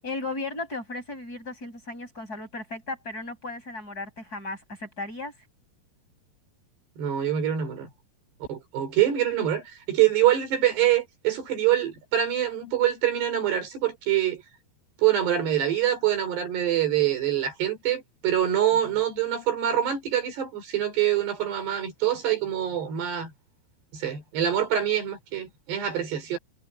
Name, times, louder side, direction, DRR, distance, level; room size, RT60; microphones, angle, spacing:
voice 1, 0.0-5.3, left 2 dB, 20° left, 8.1 m, -35 dB
voice 2, 7.0-7.9 8.5-14.4 15.0-23.3 23.9-26.4, right 11 dB, 85° right, 7.1 m, -25 dB
omnidirectional pair, 4.7 m